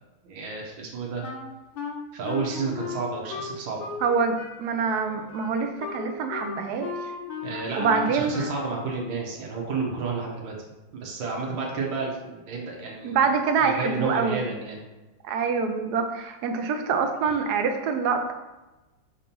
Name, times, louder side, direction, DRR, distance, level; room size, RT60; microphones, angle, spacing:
voice 1, 0.2-1.3 2.1-3.8 7.4-10.5 10.9-13.2 13.6-14.8, right 4 dB, 85° right, -1 dB, 1.8 m, -31 dB
Wind instrument woodwind instrument, 1.2-4.1 4.4-8.9, left 5 dB, 70° left, 1.5 m, -36 dB
voice 2, 4.0-6.9 7.8-8.5 13.0-14.4 15.2-18.3, right 5 dB, 65° right, 6 dB, 1.1 m, -25 dB
6.1 x 2.9 x 5.2 m, 1.1 s
omnidirectional pair, 2.0 m